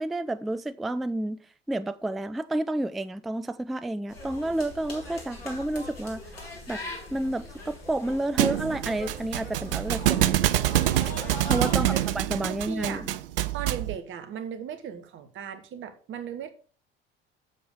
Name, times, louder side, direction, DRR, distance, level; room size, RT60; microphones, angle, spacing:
voice 1, 0.0-1.4 1.7-6.2 6.7-6.8 7.1-10.5 11.5-13.1, right 1 dB, ahead, 0.3 m, -30 dB
sound 1, 4.1-12.1, left 2 dB, 80° left, 2.0 m, -41 dB
Thump thud, 8.4-13.9, right 14 dB, 70° right, 0.5 m, -26 dB
voice 2, 11.6-11.9 12.5-13.0 13.5-16.5, right 8 dB, 40° right, 1.2 m, -37 dB
7.3 x 7.1 x 5.0 m
figure-of-eight pair, 60°, 30 cm